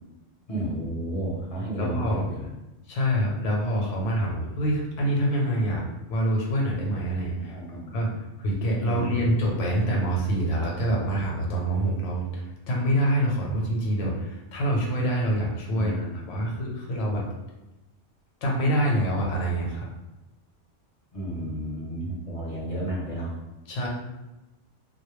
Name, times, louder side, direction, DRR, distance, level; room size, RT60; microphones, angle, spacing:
voice 1, 0.5-2.5 7.4-8.1 8.8-9.3 15.7-16.6 21.1-23.3, right 1 dB, 35° left, -6 dB, 0.6 m, -32 dB
voice 2, 1.8-2.2 2.9-5.8 6.1-7.6 7.9-8.1 8.4-17.3 18.4-19.9 23.7-23.9, right 1 dB, 75° left, -2 dB, 1.0 m, -26 dB
2.2 x 2.1 x 3.0 m, 1.0 s
omnidirectional pair, 1.3 m